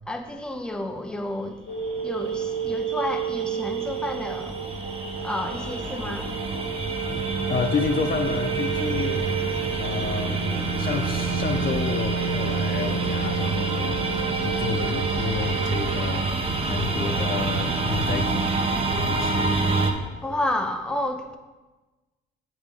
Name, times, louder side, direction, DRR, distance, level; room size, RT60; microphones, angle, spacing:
voice 1, 0.1-1.6 2.0-4.6 5.2-6.3 20.2-21.4, left 1 dB, 5° left, 0.6 m, -30 dB
sound 1, 1.7-20.5, right 7 dB, 80° left, 2.1 m, -33 dB
sound 2, 2.2-19.9, right 3 dB, 30° right, 0.8 m, -27 dB
voice 2, 7.1-9.3 9.8-18.6 18.9-19.6, left 6 dB, 45° left, 0.6 m, -30 dB
7.8 x 5.0 x 3.7 m
cardioid pair, 90°, 20 cm